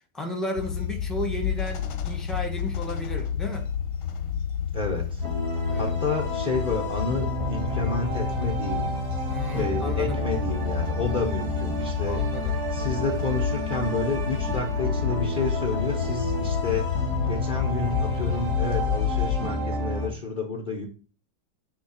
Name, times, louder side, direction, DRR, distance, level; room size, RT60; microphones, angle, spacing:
voice 1, 0.1-3.7 5.6-5.9 9.3-10.2 12.1-12.6, left 1 dB, ahead, 0.8 m, -33 dB
sound 1, 0.6-19.4, left 9 dB, 85° left, 1.7 m, -30 dB
voice 2, 4.7-5.2 5.8-8.9 9.5-12.2 12.7-16.8 17.2-20.8, left 3 dB, 60° left, 0.5 m, -30 dB
sound 2, 5.2-20.1, right 1 dB, 45° right, 2.8 m, -31 dB
9.1 x 3.1 x 4.2 m
omnidirectional pair, 2.2 m